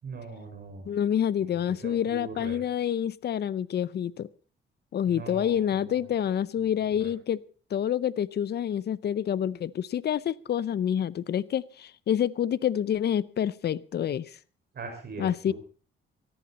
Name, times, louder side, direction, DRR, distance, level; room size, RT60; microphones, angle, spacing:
voice 1, 0.0-0.9 1.8-2.6 5.1-6.0 6.6-7.1 14.7-15.5, right 4 dB, 50° right, 5.3 m, -41 dB
voice 2, 0.8-4.3 4.9-7.4 7.7-14.4 15.2-15.5, left 9 dB, 50° left, 0.7 m, -28 dB
18.0 x 14.0 x 4.2 m
cardioid pair, 95°, 21 cm